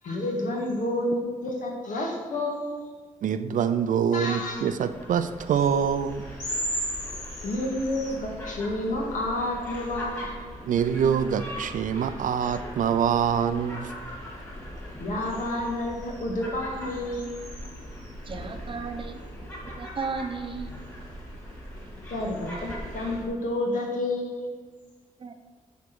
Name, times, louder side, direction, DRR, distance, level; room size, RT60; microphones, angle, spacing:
voice 1, 0.0-2.9 4.1-4.7 7.4-10.4 15.0-17.4 22.1-24.5, left 1 dB, 80° left, 0 dB, 1.9 m, -30 dB
voice 2, 3.2-6.3 10.7-13.9, right 8 dB, 80° right, 11 dB, 0.5 m, -25 dB
sound 1, 4.6-23.3, equal, 20° left, 2.7 m, -38 dB
voice 3, 18.2-20.7 25.2-25.3, right 4 dB, 40° right, 7 dB, 0.7 m, -35 dB
8.4 x 4.9 x 6.1 m, 1.5 s
wide cardioid pair, 145°, 13 cm